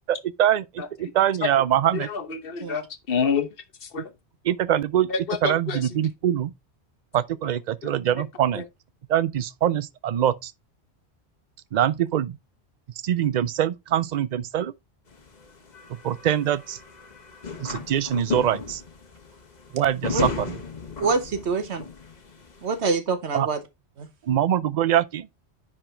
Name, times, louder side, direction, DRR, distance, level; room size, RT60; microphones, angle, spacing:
voice 1, 0.1-2.1 4.4-5.1 5.4-6.5 7.1-8.6 9.1-10.5 11.7-12.4 13.0-14.7 16.0-16.8 17.6-18.8 19.7-20.6 23.3-23.5 24.3-25.3, right 10 dB, 55° right, 0.5 m, -23 dB
voice 2, 1.9-3.5 3.9-4.1 5.1-5.8 8.6-8.7, left 6 dB, 60° left, 1.2 m, -27 dB
sound 1, 15.1-22.8, left 4 dB, 40° left, 1.3 m, -35 dB
voice 3, 21.0-21.8 22.6-23.6 24.0-24.1, right 4 dB, 85° right, 1.5 m, -25 dB
10.0 x 4.4 x 3.3 m
omnidirectional pair, 1.1 m